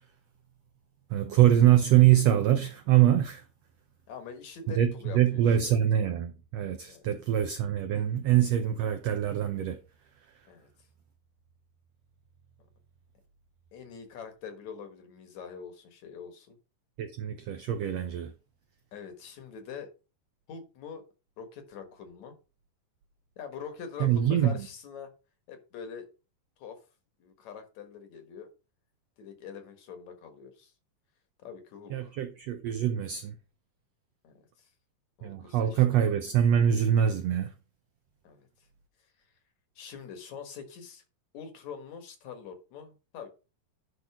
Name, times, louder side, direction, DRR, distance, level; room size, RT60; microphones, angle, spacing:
voice 1, 1.1-3.4 4.8-9.8 17.0-18.3 24.0-24.6 31.9-33.3 35.2-37.5, right 11 dB, 85° right, 1.5 m, -24 dB
voice 2, 4.1-5.8 6.9-7.0 10.5-10.7 13.7-16.6 18.9-19.9 20.5-21.1 21.4-22.4 23.4-25.1 25.5-26.1 26.6-26.8 27.2-28.5 29.2-30.7 31.4-32.2 34.2-34.7 35.2-36.0 38.2-38.5 39.8-41.0 41.3-43.3, left 6 dB, 60° left, 2.4 m, -44 dB
10.5 x 3.9 x 5.9 m
omnidirectional pair, 3.9 m